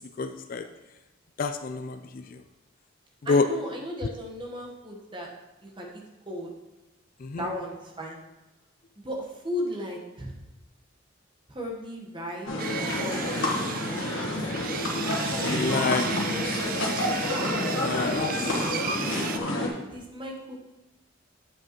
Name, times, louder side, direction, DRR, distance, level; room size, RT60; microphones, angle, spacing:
voice 1, 0.2-0.7 1.4-2.4 3.3-3.4 7.2-7.5 15.3-16.1 17.7-18.3, left 4 dB, 40° left, 8 dB, 0.3 m, -28 dB
voice 2, 3.2-5.3 5.6-6.5 7.4-8.2 9.0-10.3 11.5-12.6 13.0-14.5 17.0-17.1 18.3-20.6, equal, 25° right, -1 dB, 1.1 m, -36 dB
sound 1, 12.5-19.7, left 1 dB, 75° left, 1.4 m, -28 dB
Sawing, 12.6-19.4, right 8 dB, 40° right, 0.3 m, -35 dB
8.5 x 7.5 x 3.0 m, 1.0 s
head